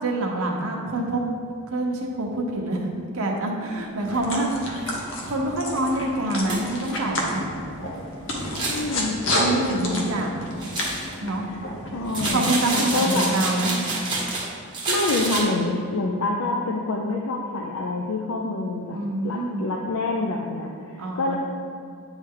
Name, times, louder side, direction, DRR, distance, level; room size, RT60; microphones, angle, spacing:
voice 1, 0.0-1.2 1.7-4.5 5.3-7.4 9.4-10.6 11.2-11.5 12.3-13.8 18.9-19.7 21.0-21.4, right 1 dB, 80° right, 0 dB, 0.9 m, -26 dB
sound 1, 4.0-12.3, left 1 dB, 60° left, 1.0 m, -30 dB
sound 2, 4.1-4.2 4.8-4.9 5.3-5.4 5.8-5.9 6.5-6.9 8.4-8.9 10.6-11.1 12.1-14.5 14.7-15.4, right 3 dB, 20° right, 1.2 m, -28 dB
voice 2, 8.7-9.5 11.5-11.6 11.9-13.3 14.9-19.0 19.2-21.4, left 2 dB, 80° left, 0 dB, 0.5 m, -27 dB
8.9 x 3.2 x 3.7 m, 2.3 s
head